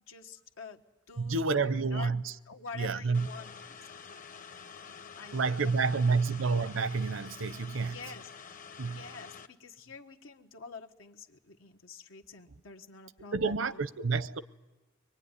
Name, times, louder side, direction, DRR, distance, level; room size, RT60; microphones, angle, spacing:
voice 1, 0.1-2.1 2.5-6.2 7.8-8.3 8.9-13.8, left 4 dB, 90° left, 1.5 m, -48 dB
voice 2, 1.2-2.3 2.7-3.3 5.3-8.0 8.8-9.0 13.3-14.4, right 4 dB, 75° right, 0.8 m, -29 dB
sound 1, 3.1-9.5, left 6 dB, 40° left, 0.9 m, -48 dB
24.0 x 21.5 x 9.8 m
head